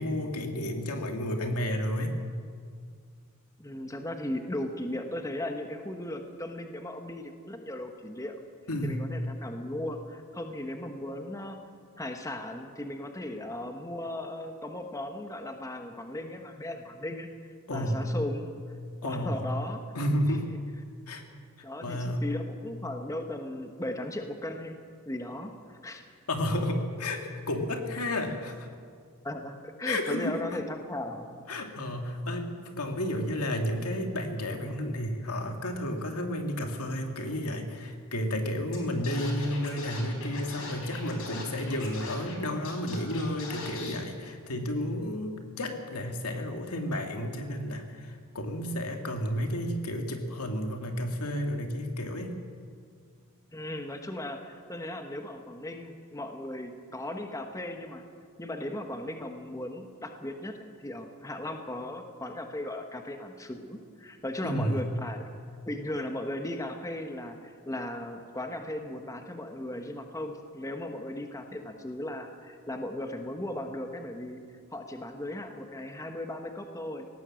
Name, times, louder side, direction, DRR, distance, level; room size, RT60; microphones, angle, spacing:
voice 1, 0.0-2.1 8.7-9.1 17.7-18.1 19.0-19.5 19.9-20.6 21.1-21.2 21.8-22.2 26.3-28.7 29.8-30.3 31.5-52.4 64.4-64.8, left 1 dB, 80° left, 4 dB, 2.4 m, -31 dB
voice 2, 3.6-8.4 8.8-11.6 12.0-18.5 19.0-19.8 20.3-20.4 21.6-24.8 25.1-26.1 29.2-31.3 53.5-58.0 58.4-65.3 65.6-74.4 74.7-77.1, left 1 dB, 15° left, 5 dB, 1.3 m, -37 dB
Scratching (performance technique), 38.7-38.8 39.0-42.3 42.6-43.9, left 3 dB, 65° left, 4.6 m, -41 dB
19.5 x 17.5 x 7.7 m, 2.1 s
head